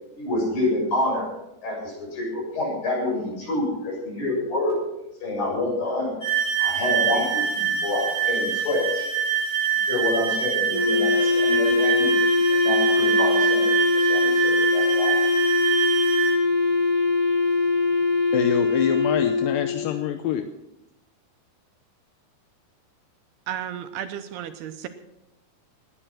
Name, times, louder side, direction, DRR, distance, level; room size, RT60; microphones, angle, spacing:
voice 1, 0.2-1.3 1.6-4.8 5.2-6.2 6.6-9.1 9.9-12.1 12.5-15.1, left 2 dB, 55° left, -3 dB, 8.8 m, -27 dB
sound 1, 6.2-16.4, right 7 dB, 20° left, 2.9 m, -25 dB
Wind instrument woodwind instrument, 10.7-20.0, left 4 dB, 10° right, 2.1 m, -22 dB
voice 2, 18.3-20.5, left 10 dB, 75° left, 8 dB, 2.1 m, -26 dB
voice 3, 23.5-24.9, right 10 dB, 80° right, 8 dB, 2.6 m, -33 dB
19.0 x 10.0 x 6.0 m, 0.89 s
omnidirectional pair, 4.9 m